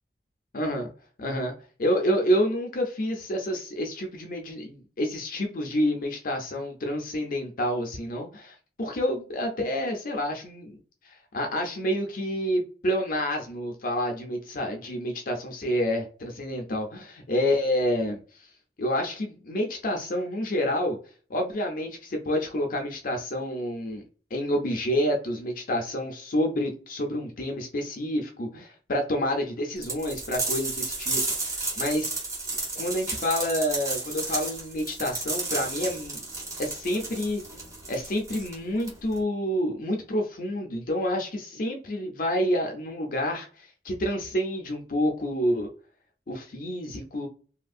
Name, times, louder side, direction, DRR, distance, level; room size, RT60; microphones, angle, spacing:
voice 1, 0.5-0.9 1.2-1.5 1.8-10.8 11.0-18.5 18.8-21.0 21.3-24.0 24.3-32.1 32.8-36.2 36.6-37.4 37.9-45.7 46.3-47.3, equal, 55° left, 3 dB, 0.5 m, -28 dB
sound 1, 29.8-39.2, right 3 dB, 20° right, 1.2 m, -32 dB
2.8 x 2.5 x 2.4 m, 0.39 s
head